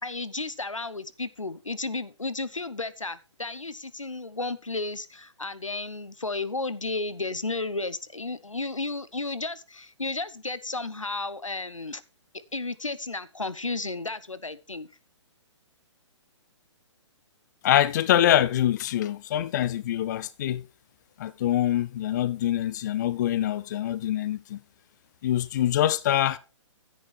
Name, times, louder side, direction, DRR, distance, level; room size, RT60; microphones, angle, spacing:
voice 1, 0.0-12.0 12.5-14.9, left 3 dB, 85° left, 1.0 m, -33 dB
voice 2, 17.6-20.6 21.2-24.6 25.2-26.4, left 12 dB, 35° left, 0.5 m, -24 dB
11.0 x 10.0 x 3.4 m
figure-of-eight pair, 130°, 16 cm